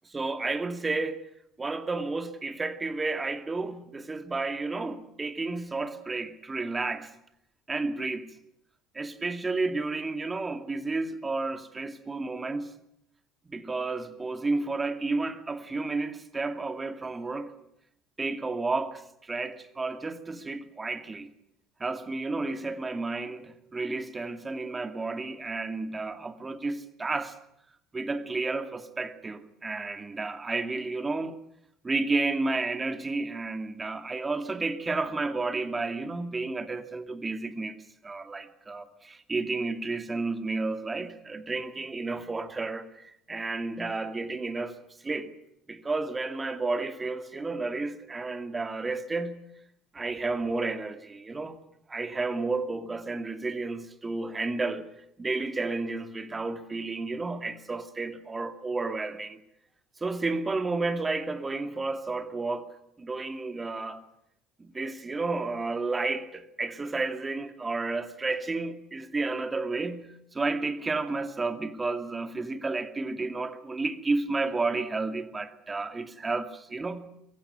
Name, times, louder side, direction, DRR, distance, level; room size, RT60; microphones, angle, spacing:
voice 1, 0.1-1.3 1.6-7.1 7.7-8.3 8.9-12.7 13.5-17.5 18.2-21.3 21.8-27.3 27.9-31.4 31.8-37.8 38.0-44.8 45.0-45.3 45.7-49.4 49.9-51.6 51.9-54.9 55.2-59.4 60.0-62.7 63.0-64.0 64.6-77.1, right 3 dB, 20° right, 2.3 m, -31 dB
23.0 x 15.5 x 9.9 m
hypercardioid pair, 65°, 0 cm